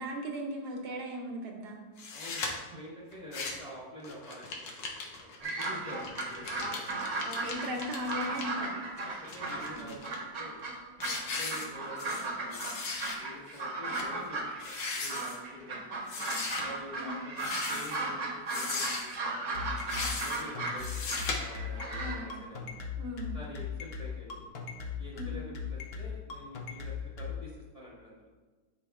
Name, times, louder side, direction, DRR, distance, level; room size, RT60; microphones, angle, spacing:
voice 1, 0.0-1.8 7.2-8.7 9.7-9.9 17.0-17.2 22.0-22.5 23.0-23.4 25.1-25.4, equal, 65° right, 1 dB, 1.4 m, -38 dB
sound 1, 2.0-2.5 3.1-3.7 4.0-8.4 9.0-10.2 10.6-10.7 11.0-12.3 12.5-13.2 13.5-13.6 13.9-14.1 14.5-15.4 16.1-16.6 17.3-18.0 18.5-19.2 19.8-20.4 20.8-21.3, left 4 dB, 75° left, 1.6 m, -38 dB
voice 2, 2.1-7.3 8.6-10.6 11.1-12.7 13.2-19.6 20.1-22.7 23.3-24.4 25.0-28.3, left 1 dB, 20° left, -6 dB, 1.3 m, -47 dB
sound 2, 5.4-9.8 10.0-22.2, right 3 dB, 50° right, 1.2 m, -36 dB
sound 3, 19.5-27.3, left 6 dB, 55° left, 0.7 m, -38 dB
11.0 x 5.0 x 2.3 m, 1.3 s
omnidirectional pair, 2.0 m